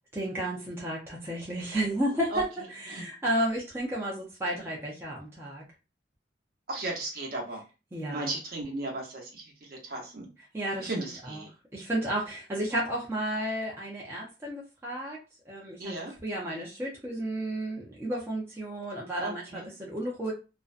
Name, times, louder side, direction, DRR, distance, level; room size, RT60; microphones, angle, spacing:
voice 1, 0.1-5.6 7.9-8.3 10.5-11.4 11.7-15.2 15.5-15.9 16.2-20.3, right 1 dB, 15° right, -5 dB, 0.5 m, -32 dB
voice 2, 6.7-7.6 8.1-10.3 10.8-11.5 15.8-16.1 19.2-19.7, right 2 dB, 50° right, -2 dB, 0.8 m, -35 dB
2.5 x 2.1 x 2.4 m, 0.30 s
head